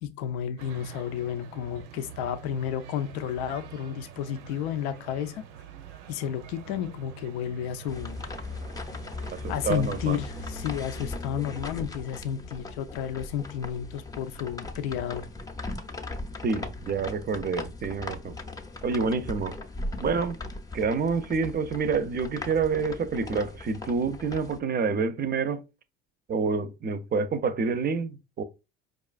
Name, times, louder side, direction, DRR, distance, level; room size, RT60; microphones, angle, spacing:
voice 1, 0.0-5.4 6.1-8.2 9.5-15.2, left 9 dB, 80° left, 0.6 m, -32 dB
sound 1, 0.6-10.9, right 9 dB, 75° right, 0.6 m, -46 dB
sound 2, 7.9-24.6, left 2 dB, 10° left, 0.6 m, -38 dB
voice 2, 9.4-10.2 16.4-18.4 18.8-19.5 20.0-20.4 20.7-25.6 26.3-28.4, right 5 dB, 30° right, 0.5 m, -28 dB
4.7 x 2.3 x 2.4 m
hypercardioid pair, 75°, 31 cm